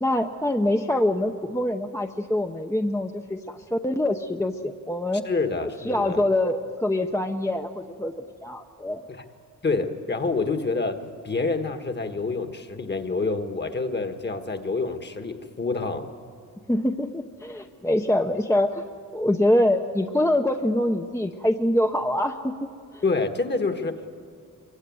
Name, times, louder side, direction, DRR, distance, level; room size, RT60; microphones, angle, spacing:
voice 1, 0.0-5.3 5.8-8.1 8.4-9.0 16.7-18.8 19.1-22.7 22.9-23.0, left 1 dB, 10° left, 4 dB, 0.7 m, -24 dB
voice 2, 5.2-6.2 9.1-9.2 9.6-16.1 23.0-24.2, left 3 dB, 35° left, 7 dB, 1.5 m, -27 dB
24.0 x 23.0 x 9.5 m, 2.2 s
wide cardioid pair, 155°, 31 cm